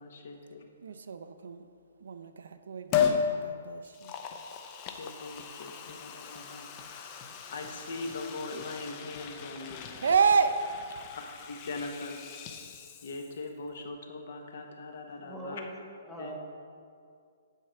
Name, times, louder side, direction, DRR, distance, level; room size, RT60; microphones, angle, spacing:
voice 1, 0.0-0.6 4.8-10.0 11.5-12.2 13.0-15.6 16.2-16.3, left 3 dB, 55° left, 3 dB, 1.2 m, -41 dB
voice 2, 0.8-1.7 2.0-4.1 10.0-10.6, right 5 dB, 75° right, 8 dB, 0.6 m, -29 dB
Liquid, 2.9-3.3 3.8-13.5 13.8-13.9, left 7 dB, 20° left, 0.5 m, -36 dB
voice 3, 15.2-16.4, right 1 dB, 5° left, -3 dB, 0.9 m, -42 dB
9.0 x 4.7 x 7.6 m, 2.3 s
hypercardioid pair, 175°, 0 cm